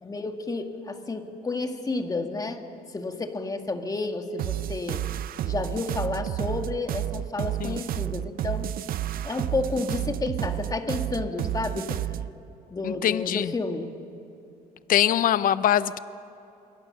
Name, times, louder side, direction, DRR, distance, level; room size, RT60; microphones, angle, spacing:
voice 1, 0.0-2.6 2.9-5.0 5.4-8.7 9.2-12.0 12.7-13.9, left 3 dB, 20° left, 5 dB, 2.0 m, -31 dB
sound 1, 4.4-12.3, right 12 dB, 60° right, 0.6 m, -30 dB
voice 2, 12.8-13.5 14.9-16.0, left 11 dB, 55° left, 15 dB, 0.7 m, -23 dB
26.5 x 23.5 x 6.6 m, 2.9 s
cardioid pair, 110°, 17 cm